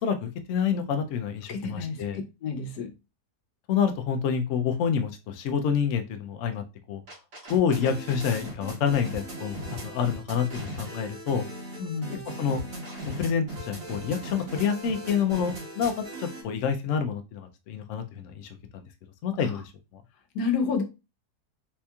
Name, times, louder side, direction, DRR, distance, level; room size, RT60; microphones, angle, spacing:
voice 1, 0.0-2.2 3.7-7.0 7.5-11.4 12.3-12.6 13.0-18.8 19.2-20.0, left 7 dB, 70° left, 6 dB, 0.8 m, -28 dB
voice 2, 1.5-2.0 2.4-2.9 11.8-12.2 19.4-19.5 20.3-20.8, left 5 dB, 85° left, 5 dB, 1.3 m, -29 dB
sound 1, 7.1-16.4, right 1 dB, 75° right, 2.2 m, -38 dB
4.2 x 2.8 x 2.3 m, 0.27 s
omnidirectional pair, 1.7 m